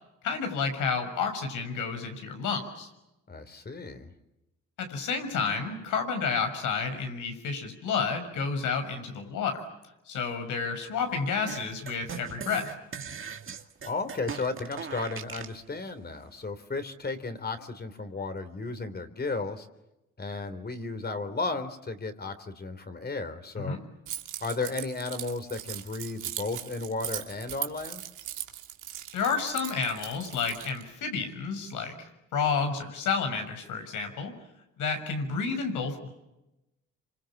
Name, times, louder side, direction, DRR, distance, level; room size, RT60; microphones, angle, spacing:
voice 1, 0.2-2.9 4.8-9.6 10.1-12.7 23.5-23.8 29.1-34.3 34.8-36.1, left 5 dB, 85° left, 6 dB, 6.6 m, -30 dB
voice 2, 3.3-4.1 13.5-13.6 13.8-19.7 20.2-23.8 24.4-28.0, left 3 dB, 30° left, 9 dB, 3.6 m, -34 dB
sound 1, 11.5-15.6, right 7 dB, 45° right, 2.1 m, -40 dB
Keys jangling, 24.1-30.8, right 12 dB, 85° right, 2.4 m, -39 dB
29.5 x 26.5 x 7.4 m, 0.93 s
cardioid pair, 90°, 30 cm